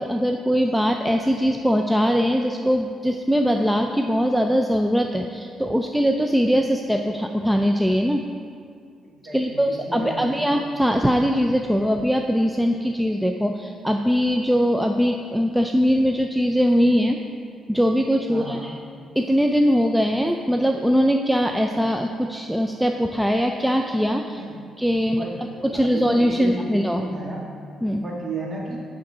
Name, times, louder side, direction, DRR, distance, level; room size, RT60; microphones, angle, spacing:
voice 1, 0.0-8.2 9.3-17.2 17.7-18.8 19.2-24.4 24.8-25.3 25.6-27.1 27.8-28.0, equal, 5° right, 3 dB, 0.4 m, -21 dB
voice 2, 9.2-10.5 18.3-18.7 24.3-24.6 25.0-25.3 25.7-27.4 27.9-28.8, right 2 dB, 35° right, -4 dB, 2.0 m, -33 dB
10.5 x 3.7 x 4.8 m, 2.3 s
cardioid pair, 90°, 0 cm